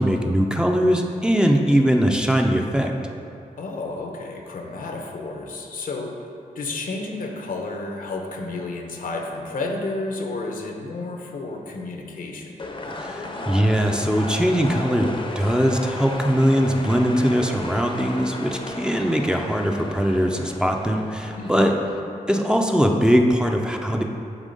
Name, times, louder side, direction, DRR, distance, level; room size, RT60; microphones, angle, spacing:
voice 1, 0.0-2.9 13.0-15.1 15.4-21.7 22.3-24.0, equal, 5° right, 1 dB, 0.5 m, -21 dB
voice 2, 3.6-6.2 6.5-12.6 21.4-21.8, left 2 dB, 80° left, 2 dB, 0.8 m, -31 dB
sound 1, 12.6-22.0, left 2 dB, 40° left, 0.6 m, -34 dB
7.2 x 4.1 x 5.3 m, 2.6 s
wide cardioid pair, 105°, 14 cm